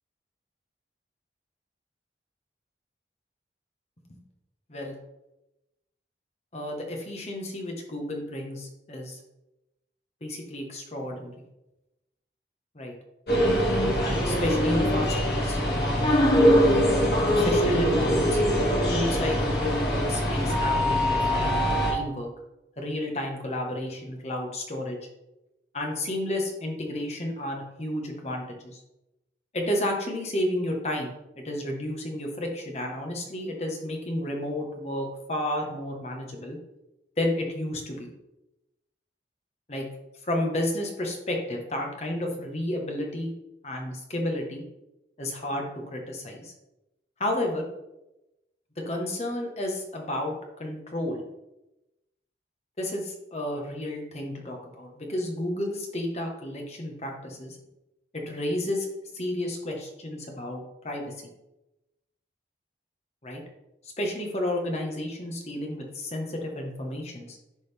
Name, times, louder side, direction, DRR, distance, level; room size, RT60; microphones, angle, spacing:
voice 1, 6.5-9.2 10.2-11.4 12.7-12.9 14.0-16.2 17.1-18.4 18.9-21.6 21.9-22.3 22.8-25.0 25.7-28.8 29.5-36.6 37.2-38.1 39.7-39.9 40.2-43.3 43.6-44.6 45.2-45.6 45.9-46.5 47.2-47.7 48.8-50.3 50.6-51.2 52.8-57.6 58.1-58.9 59.1-61.1 63.2-63.4 64.0-67.4, left 1 dB, 40° left, 1 dB, 1.2 m, -31 dB
sound 1, 13.3-21.9, equal, 65° left, 1.8 m, -23 dB
10.5 x 3.9 x 3.5 m, 0.95 s
head